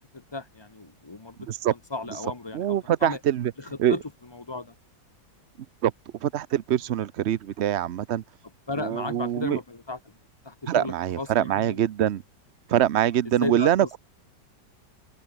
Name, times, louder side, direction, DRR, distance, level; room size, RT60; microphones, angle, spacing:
voice 1, 0.0-3.2 3.6-4.0 4.3-4.7 8.7-10.1 10.4-11.8 13.4-14.0, left 3 dB, 20° left, 0.7 m, -35 dB
voice 2, 2.5-3.5 3.8-4.0 5.8-5.9 6.2-8.2 8.8-9.6 10.7-12.2 12.7-14.0, right 11 dB, 60° right, 0.7 m, -24 dB
open air
omnidirectional pair, 1.9 m